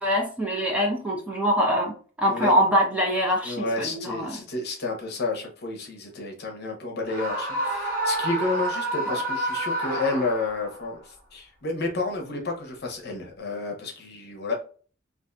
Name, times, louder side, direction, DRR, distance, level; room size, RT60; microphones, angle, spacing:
voice 1, 0.0-4.4 9.1-9.2, equal, 5° right, -1 dB, 0.5 m, -24 dB
voice 2, 3.4-14.5, left 3 dB, 55° left, 1 dB, 0.7 m, -30 dB
Screaming, 7.1-10.7, right 1 dB, 35° left, 1.4 m, -29 dB
2.6 x 2.5 x 2.2 m, 0.40 s
head